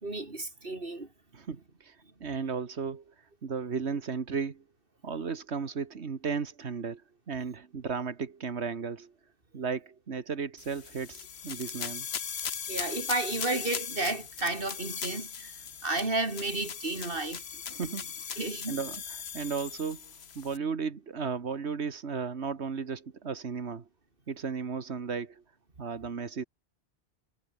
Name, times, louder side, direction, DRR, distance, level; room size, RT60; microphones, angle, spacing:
voice 1, 0.0-1.1 2.0-2.1 12.7-17.8 18.4-18.7, right 2 dB, 55° right, 3.9 m, -33 dB
voice 2, 1.3-4.6 5.0-7.0 7.3-9.1 9.5-12.1 17.7-18.4 18.7-19.0 19.3-23.9 24.3-25.4 25.8-26.4, right 5 dB, 90° right, 1.8 m, -35 dB
sound 1, 10.6-20.6, left 7 dB, 75° left, 1.3 m, -39 dB
omnidirectional pair, 1.1 m